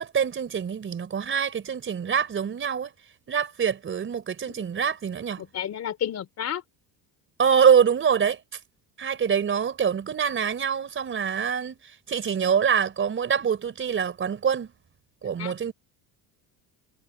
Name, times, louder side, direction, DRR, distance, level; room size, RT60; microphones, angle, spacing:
voice 1, 0.0-2.9 3.3-5.4 7.4-8.4 9.0-11.8 12.1-14.7 15.2-15.7, right 7 dB, 30° right, 4.4 m, -24 dB
voice 2, 5.4-6.6 15.4-15.7, left 10 dB, 40° left, 4.3 m, -32 dB
cardioid pair, 135°, 41 cm